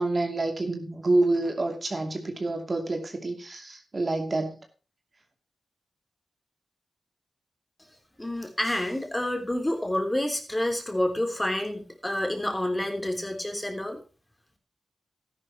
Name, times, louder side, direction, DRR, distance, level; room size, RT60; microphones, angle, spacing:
voice 1, 0.0-4.6, right 2 dB, 40° right, 4 dB, 2.6 m, -27 dB
voice 2, 8.2-14.0, left 1 dB, 15° left, 4 dB, 3.2 m, -28 dB
13.5 x 11.0 x 2.9 m, 0.35 s
cardioid pair, 60°, 0 cm